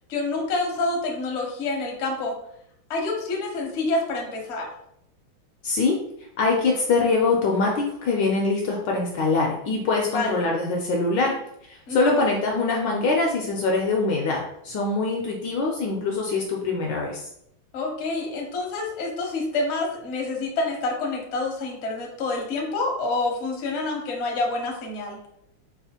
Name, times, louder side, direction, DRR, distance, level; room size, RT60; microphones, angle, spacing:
voice 1, 0.1-2.4 2.9-4.7 10.1-10.4 11.9-12.2 17.7-25.2, left 3 dB, 50° left, -1 dB, 0.8 m, -27 dB
voice 2, 5.6-6.0 6.4-11.4 11.6-17.3, left 3 dB, 70° left, -1 dB, 1.1 m, -23 dB
4.8 x 2.5 x 2.8 m, 0.75 s
omnidirectional pair, 2.3 m